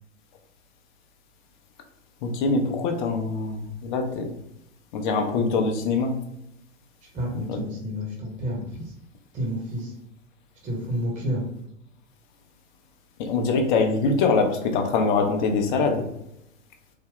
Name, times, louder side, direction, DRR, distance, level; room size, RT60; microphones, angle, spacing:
voice 1, 2.2-4.4 4.9-6.2 7.5-7.6 13.2-16.1, left 4 dB, 40° left, 4 dB, 0.6 m, -23 dB
voice 2, 7.1-8.9 9.3-10.0 10.6-11.4, equal, 20° right, -2 dB, 1.0 m, -30 dB
3.7 x 2.1 x 3.5 m, 0.82 s
figure-of-eight pair, 100°, 38 cm